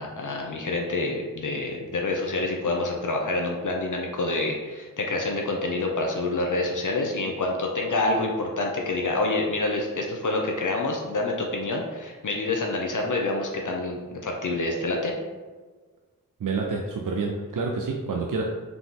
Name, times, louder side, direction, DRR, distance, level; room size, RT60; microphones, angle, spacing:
voice 1, 0.0-15.1, left 2 dB, 60° left, 0 dB, 0.6 m, -27 dB
voice 2, 16.4-18.4, right 4 dB, 65° right, 1 dB, 0.5 m, -28 dB
3.9 x 2.9 x 3.7 m, 1.4 s
cardioid pair, 45°, 34 cm